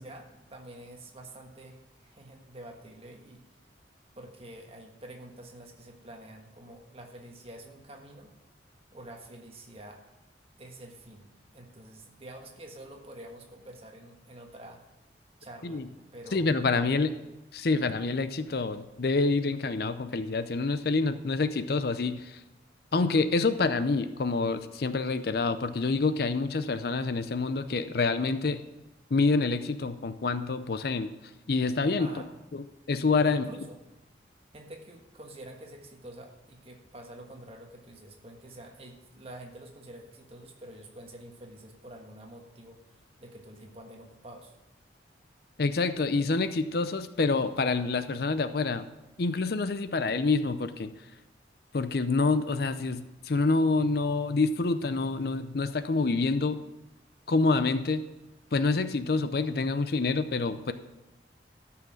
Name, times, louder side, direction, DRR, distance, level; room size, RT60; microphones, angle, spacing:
voice 1, 0.0-3.4 4.1-8.3 8.9-10.1 10.6-14.8 15.4-17.0 32.0-32.3 33.2-33.8 34.5-44.5, right 1 dB, 30° right, 2 dB, 1.4 m, -47 dB
voice 2, 16.3-17.1 17.5-22.4 22.9-28.6 29.1-31.1 31.5-32.1 32.5-33.5 45.6-48.9 49.2-50.9 51.7-56.6 57.3-58.0 58.5-60.7, left 3 dB, 55° left, 11 dB, 0.5 m, -27 dB
13.0 x 5.8 x 6.4 m, 1.0 s
head